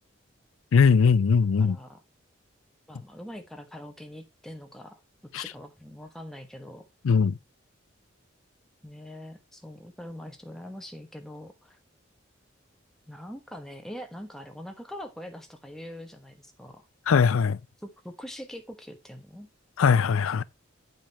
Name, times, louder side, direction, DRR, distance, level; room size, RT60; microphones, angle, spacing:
voice 1, 0.7-1.8 5.3-5.4 7.0-7.4 17.1-17.6 19.8-20.4, left 5 dB, 90° left, 0.4 m, -20 dB
voice 2, 1.6-2.0 2.9-5.0 5.4-6.9 8.8-11.8 13.1-16.9 17.8-19.5, equal, ahead, 1.3 m, -43 dB
8.9 x 5.3 x 4.1 m
head